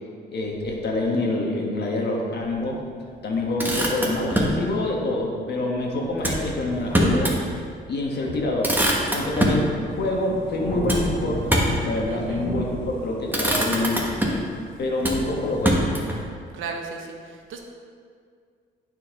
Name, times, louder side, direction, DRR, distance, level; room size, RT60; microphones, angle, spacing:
voice 1, 0.3-2.8 3.2-7.3 7.9-8.8 9.1-11.5 11.8-14.0 14.8-15.9, left 2 dB, 55° left, -1 dB, 1.4 m, -26 dB
Motor vehicle (road), 3.3-4.6 6.2-7.4 7.8-7.9 8.3-9.7 10.9-11.9 12.7-13.0 13.3-14.5 15.0-16.2, right 1 dB, 10° right, 1.2 m, -24 dB
Thunder / Rain, 9.9-16.2, equal, 25° left, 1.8 m, -34 dB
voice 2, 12.1-12.5 16.5-17.6, right 4 dB, 80° right, 3 dB, 0.9 m, -35 dB
9.0 x 4.6 x 3.7 m, 2.1 s
cardioid pair, 90°, 20 cm